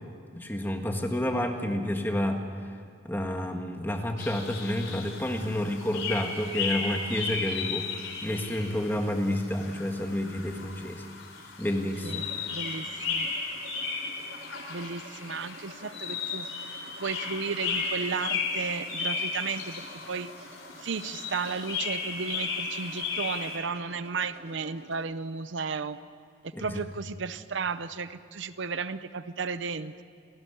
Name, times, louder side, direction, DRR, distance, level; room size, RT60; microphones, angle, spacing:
voice 1, 0.3-2.4 3.0-7.9 8.2-11.0 11.6-12.2 26.5-26.8, left 1 dB, 10° left, 3 dB, 1.6 m, -30 dB
sound 1, 4.2-23.6, left 5 dB, 80° left, 4.3 m, -35 dB
sound 2, 10.3-25.1, right 1 dB, 50° right, 2.9 m, -51 dB
voice 2, 12.0-13.3 14.7-16.5 17.0-20.5 20.8-26.0 26.4-30.0, right 5 dB, 65° right, 13 dB, 0.7 m, -34 dB
29.5 x 12.5 x 9.8 m, 2.2 s
head